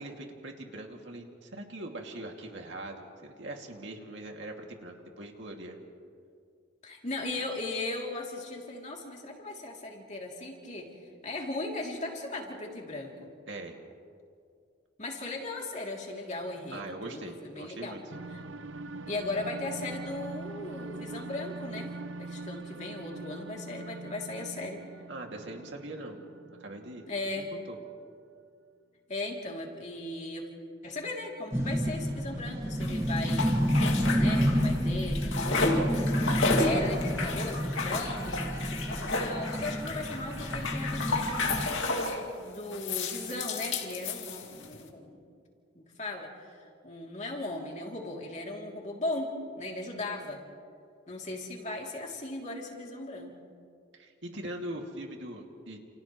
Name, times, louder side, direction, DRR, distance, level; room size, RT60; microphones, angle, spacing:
voice 1, 0.0-5.8 13.5-13.8 16.7-18.0 25.1-26.2 26.6-27.1 27.4-27.8 53.9-55.8, right 1 dB, 65° right, 1 dB, 2.4 m, -41 dB
voice 2, 6.8-10.9 11.2-13.3 15.0-18.0 19.1-24.9 27.1-27.5 29.1-30.5 30.8-33.9 34.2-45.2 45.7-46.6 46.8-50.4 51.1-53.3, left 2 dB, 35° left, -1 dB, 3.0 m, -37 dB
sound 1, 18.1-27.5, right 3 dB, 80° right, 0.7 m, -43 dB
sound 2, 31.5-41.7, equal, 15° right, 1.7 m, -29 dB
sound 3, 32.8-34.8 35.0-42.2 42.7-44.7, left 3 dB, 75° left, 2.3 m, -32 dB
29.5 x 29.5 x 3.2 m, 2.3 s
head